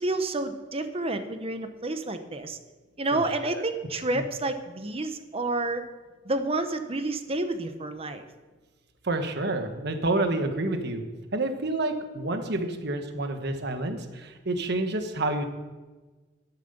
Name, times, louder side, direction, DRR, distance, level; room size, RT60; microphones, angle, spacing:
voice 1, 0.0-2.6 3.0-5.8 6.2-8.2, right 2 dB, 30° right, 9 dB, 0.9 m, -29 dB
voice 2, 3.1-3.6 4.1-4.2 9.0-11.0 11.3-15.4, right 2 dB, 60° right, 7 dB, 1.3 m, -29 dB
13.0 x 7.5 x 6.7 m, 1.3 s
head